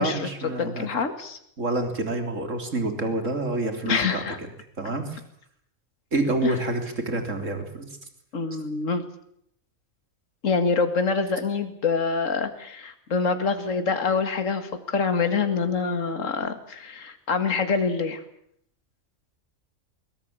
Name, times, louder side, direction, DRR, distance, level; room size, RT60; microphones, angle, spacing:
voice 1, 0.0-0.9 1.6-4.2 4.8-5.2 6.1-7.9, right 2 dB, 65° right, 6 dB, 3.9 m, -27 dB
voice 2, 0.6-1.4 3.9-4.4 6.4-6.6 8.3-9.1 10.4-18.2, left 5 dB, 65° left, 8 dB, 2.3 m, -25 dB
22.5 x 19.0 x 8.8 m, 0.70 s
omnidirectional pair, 1.4 m